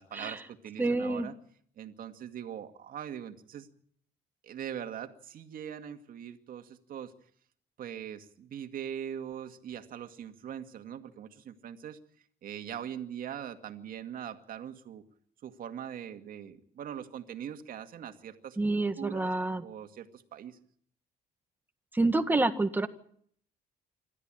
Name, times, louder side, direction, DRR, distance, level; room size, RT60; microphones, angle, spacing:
voice 1, 0.0-1.4 1.8-3.7 4.4-7.1 7.8-12.0 12.4-15.0 15.4-19.3 19.6-20.6, right 9 dB, 55° right, 7 dB, 2.2 m, -41 dB
voice 2, 0.8-1.3 18.6-19.6 21.9-22.9, right 2 dB, 10° right, 8 dB, 1.8 m, -28 dB
26.5 x 13.5 x 9.0 m, 0.63 s
cardioid pair, 110°, 17 cm